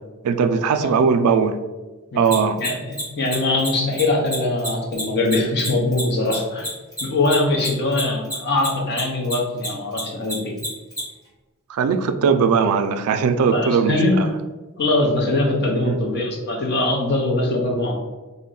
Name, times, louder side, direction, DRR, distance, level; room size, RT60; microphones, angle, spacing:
voice 1, 0.2-1.6 2.2-2.6 11.7-14.3 15.8-16.0, right 5 dB, 85° right, 8 dB, 0.3 m, -19 dB
voice 2, 2.1-6.7 7.0-10.5 13.5-14.2 14.8-17.9, left 2 dB, 50° left, 0 dB, 0.7 m, -22 dB
Mechanisms, 2.2-9.0 9.2-11.0, equal, 15° left, 1.4 m, -29 dB
3.7 x 2.1 x 3.7 m, 1.2 s
head